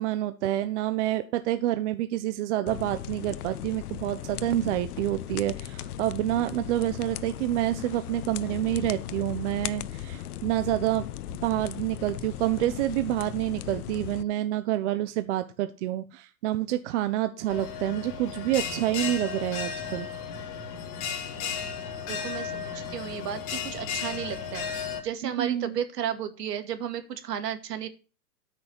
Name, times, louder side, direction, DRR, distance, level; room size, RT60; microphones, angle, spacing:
voice 1, 0.0-11.0 11.4-20.1 25.2-25.8, right 14 dB, 45° right, 10 dB, 0.9 m, -28 dB
sound 1, 2.7-14.2, left 11 dB, 65° left, 0.9 m, -37 dB
Bell, 17.5-25.0, left 7 dB, 35° left, 3.2 m, -34 dB
voice 2, 22.1-27.9, right 9 dB, 70° right, 8 dB, 2.3 m, -33 dB
13.0 x 6.2 x 6.0 m, 0.36 s
hypercardioid pair, 125°, 50 cm